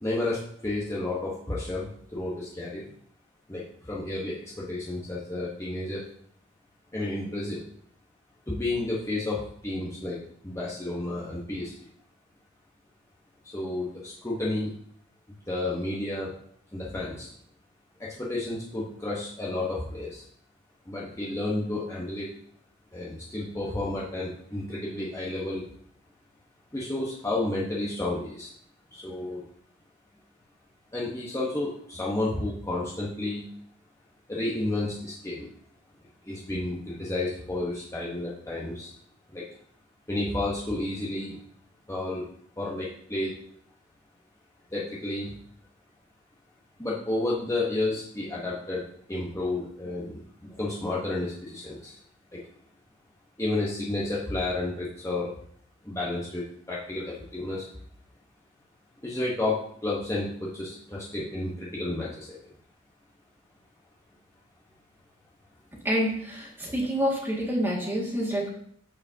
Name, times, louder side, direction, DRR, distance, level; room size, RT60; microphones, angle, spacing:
voice 1, 0.0-2.8 3.5-3.6 3.9-6.0 6.9-7.6 8.5-11.7 13.5-14.7 15.5-16.3 16.7-17.3 18.0-20.2 20.9-22.2 22.9-25.6 26.7-28.5 28.9-29.4 30.9-33.4 34.3-35.5 36.3-38.9 39.3-39.4 40.1-41.4 41.9-42.2 42.6-43.3 44.7-45.3 46.8-48.8 49.1-50.2 50.6-51.9 53.4-55.3 55.9-56.4 56.7-57.6 59.0-62.4, left 2 dB, 15° left, -6 dB, 1.1 m, -31 dB
voice 2, 65.8-68.5, equal, 10° right, -3 dB, 2.0 m, -27 dB
14.0 x 4.8 x 2.8 m, 0.64 s
head